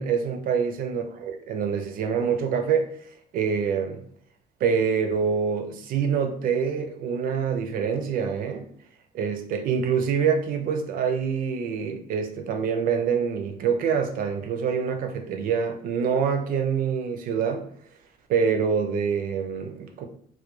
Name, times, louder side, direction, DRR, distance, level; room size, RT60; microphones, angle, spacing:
voice 1, 0.0-2.9 3.3-4.0 4.6-8.7 9.1-17.6 18.3-20.1, right 6 dB, 60° right, 5 dB, 0.4 m, -25 dB
2.2 x 2.1 x 2.9 m, 0.62 s
cardioid pair, 145°, 17 cm